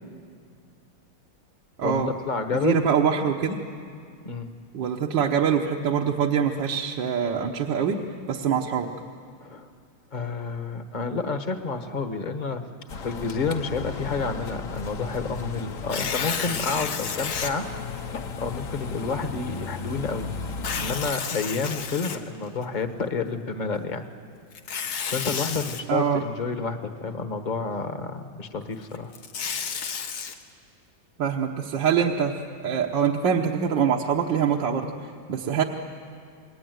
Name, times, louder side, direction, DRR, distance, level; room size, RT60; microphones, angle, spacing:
voice 1, 1.8-2.9 4.2-4.6 9.4-9.7 10.1-12.7 13.0-17.7 18.4-20.3 20.8-24.0 25.0-29.1, left 4 dB, 25° left, 7 dB, 1.2 m, -29 dB
voice 2, 2.6-3.6 4.7-8.9 25.9-26.2 31.2-35.6, right 7 dB, 60° right, 0 dB, 1.7 m, -24 dB
sound 1, 12.9-21.1, left 5 dB, 50° left, 1.2 m, -35 dB
Tearing, 15.8-17.5 18.2-18.3 20.5-22.6 24.5-25.8 28.9-30.3, left 6 dB, 80° left, 2.2 m, -31 dB
29.0 x 20.5 x 9.4 m, 2.3 s
omnidirectional pair, 2.3 m